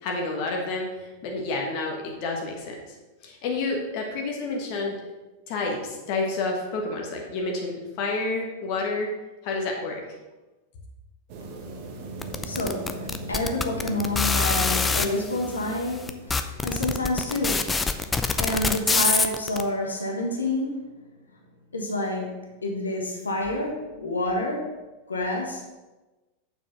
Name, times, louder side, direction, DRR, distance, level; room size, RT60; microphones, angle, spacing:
voice 1, 0.0-2.7 3.2-5.0 5.5-9.1 9.4-10.0, left 3 dB, 45° left, 0 dB, 1.4 m, -29 dB
sound 1, 11.3-17.2, right 2 dB, 45° right, 1.2 m, -39 dB
sound 2, 12.2-15.1 15.7-15.8 16.1-19.6, left 4 dB, 15° left, 0.6 m, -24 dB
voice 2, 12.4-17.8 18.1-20.9 21.7-24.7 25.1-25.6, left 1 dB, 75° left, 0 dB, 1.5 m, -28 dB
7.0 x 5.9 x 5.7 m, 1.1 s
figure-of-eight pair, 90°, 0 cm